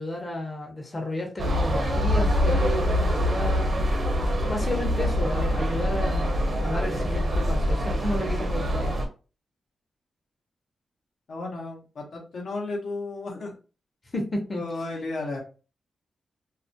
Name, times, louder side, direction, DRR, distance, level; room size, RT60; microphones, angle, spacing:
voice 1, 0.0-3.7 4.2-6.3 6.6-8.9 14.1-14.6, left 1 dB, 35° left, 1 dB, 0.7 m, -32 dB
sound 1, 1.4-9.1, equal, 50° right, 0.7 m, -24 dB
voice 2, 11.3-13.6 14.5-15.4, left 2 dB, 70° left, 0 dB, 0.7 m, -33 dB
2.3 x 2.1 x 2.6 m, 0.35 s
cardioid pair, 65°, 0 cm